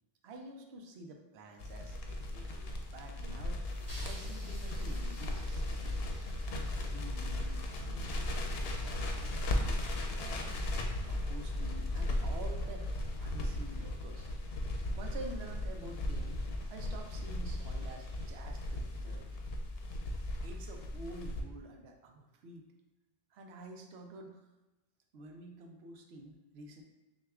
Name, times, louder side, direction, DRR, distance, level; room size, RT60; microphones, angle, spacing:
voice 1, 0.2-3.7 4.0-6.0 6.5-12.9 13.2-14.3 15.0-16.4 16.7-19.3 20.4-22.6 23.3-24.4 25.1-26.8, right 2 dB, 90° right, 3 dB, 0.8 m, -49 dB
Crackle, 1.6-21.4, left 1 dB, 75° left, 0.8 m, -36 dB
sound 1, 3.7-19.1, equal, 20° right, 1.4 m, -58 dB
6.2 x 2.4 x 2.3 m, 1.0 s
omnidirectional pair, 1.0 m